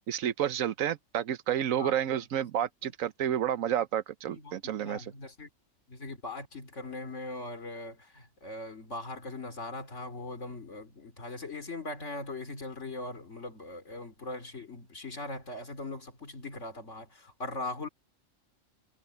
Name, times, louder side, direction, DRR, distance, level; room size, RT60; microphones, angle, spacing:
voice 1, 0.1-5.1, right 10 dB, 85° right, 1.2 m, -30 dB
voice 2, 4.3-5.5 5.9-17.9, left 2 dB, 65° left, 3.4 m, -40 dB
omnidirectional pair, 1.3 m